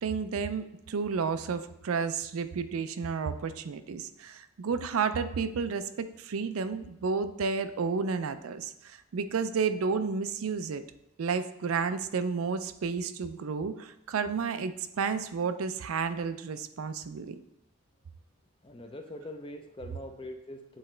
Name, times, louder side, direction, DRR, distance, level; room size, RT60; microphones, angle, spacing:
voice 1, 0.0-10.8 11.2-17.4, right 5 dB, 85° right, 11 dB, 0.4 m, -31 dB
voice 2, 18.6-20.8, left 1 dB, 25° left, 5 dB, 0.5 m, -43 dB
7.8 x 4.0 x 3.2 m, 0.83 s
head